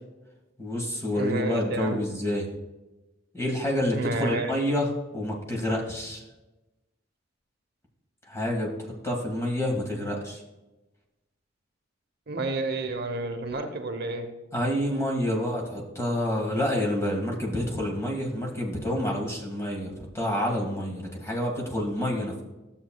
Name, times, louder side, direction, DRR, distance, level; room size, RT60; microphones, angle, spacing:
voice 1, 0.6-2.5 3.3-6.2 8.3-8.7 9.0-10.4 14.5-22.4, left 1 dB, 15° left, -1 dB, 1.7 m, -28 dB
voice 2, 1.1-2.0 3.9-4.5 12.3-14.3, right 2 dB, 55° right, 5 dB, 0.9 m, -30 dB
12.5 x 7.3 x 2.3 m, 1.1 s
head